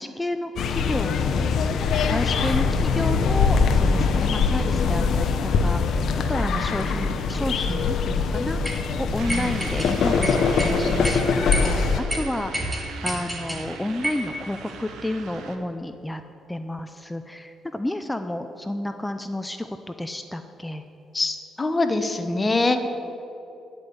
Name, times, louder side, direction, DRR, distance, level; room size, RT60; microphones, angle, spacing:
voice 1, 0.0-1.5 2.0-6.0 6.3-11.3 11.6-16.2 16.5-20.8, left 1 dB, 10° left, 8 dB, 0.4 m, -31 dB
sound 1, 0.6-12.0, left 5 dB, 70° left, 0.7 m, -22 dB
sound 2, 8.6-8.8 9.3-9.9 10.2-10.7 11.0-11.2 11.5-11.7 12.1-12.2 12.5-13.6 14.0-14.3, right 1 dB, 10° right, 1.7 m, -29 dB
sound 3, 9.2-15.6, right 5 dB, 80° right, 0.8 m, -39 dB
voice 2, 21.1-22.8, left 2 dB, 25° left, 8 dB, 0.8 m, -23 dB
9.9 x 5.3 x 8.2 m, 2.9 s
cardioid pair, 90°, 0 cm